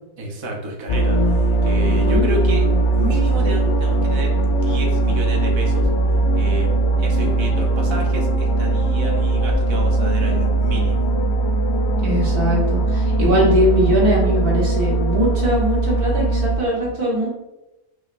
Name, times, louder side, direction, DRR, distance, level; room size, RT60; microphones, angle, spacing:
voice 1, 0.2-2.7 2.9-5.9 6.3-6.7 7.0-11.1, right 1 dB, 35° right, 0 dB, 0.5 m, -30 dB
sound 1, 0.9-16.6, right 2 dB, 65° left, 0.7 m, -19 dB
voice 2, 1.9-2.2 12.0-17.3, equal, 85° right, -4 dB, 1.8 m, -21 dB
4.8 x 3.0 x 2.5 m, 0.96 s
omnidirectional pair, 1.5 m